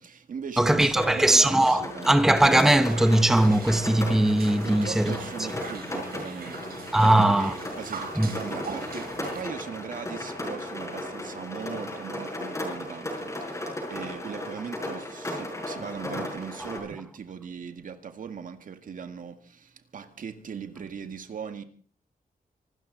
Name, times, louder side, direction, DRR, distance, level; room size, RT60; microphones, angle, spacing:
voice 1, 0.0-2.2 4.6-21.6, right 6 dB, 65° right, 1.9 m, -39 dB
voice 2, 0.6-5.1 6.9-7.5 8.2-8.3, right 1 dB, 5° right, 0.8 m, -20 dB
Rain, 1.0-16.8, left 1 dB, 20° left, 5.9 m, -36 dB
Piano, 1.4-16.8, equal, 60° left, 5.0 m, -49 dB
sound 1, 2.4-9.4, right 5 dB, 90° right, 3.9 m, -42 dB
26.0 x 13.0 x 4.0 m
wide cardioid pair, 165°, 15 cm